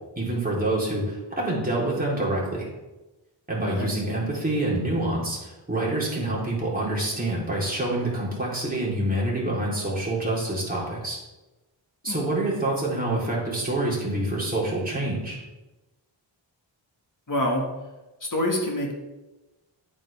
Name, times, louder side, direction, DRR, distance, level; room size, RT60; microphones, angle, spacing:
voice 1, 0.2-2.7 3.5-11.2 12.0-15.4, right 1 dB, 20° right, -6 dB, 3.9 m, -26 dB
voice 2, 17.3-17.7 18.2-18.9, left 1 dB, 40° left, 0 dB, 2.2 m, -26 dB
9.9 x 8.9 x 3.7 m, 1.1 s
wide cardioid pair, 85°, 46 cm